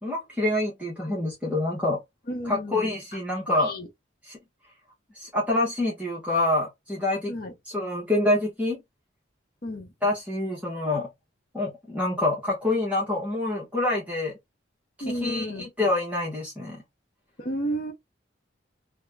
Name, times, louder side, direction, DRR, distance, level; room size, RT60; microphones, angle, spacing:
voice 1, 0.0-2.0 2.4-3.7 4.3-4.4 5.1-7.3 7.7-8.8 10.0-11.1 11.5-14.3 15.0-16.8, left 2 dB, 10° right, 0.7 m, -26 dB
voice 2, 2.3-2.9 3.5-3.9 7.3-7.5 9.6-9.9 15.0-15.7 17.4-17.9, equal, 50° left, 0.8 m, -32 dB
2.4 x 2.1 x 3.1 m
head